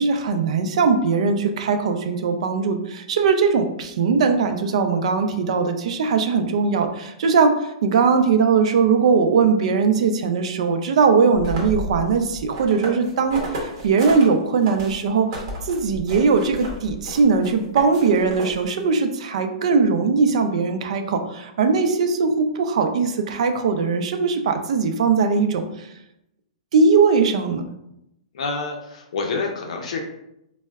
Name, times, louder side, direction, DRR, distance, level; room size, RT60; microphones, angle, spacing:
voice 1, 0.0-15.3 15.6-25.9 26.7-27.6, right 5 dB, 60° right, 7 dB, 0.4 m, -20 dB
sound 1, 11.3-14.2 14.6-18.8, right 1 dB, 40° right, 0.9 m, -33 dB
voice 2, 28.3-30.0, left 4 dB, 65° left, 2 dB, 0.5 m, -27 dB
4.2 x 2.1 x 2.3 m, 0.83 s
hypercardioid pair, 165°, 4 cm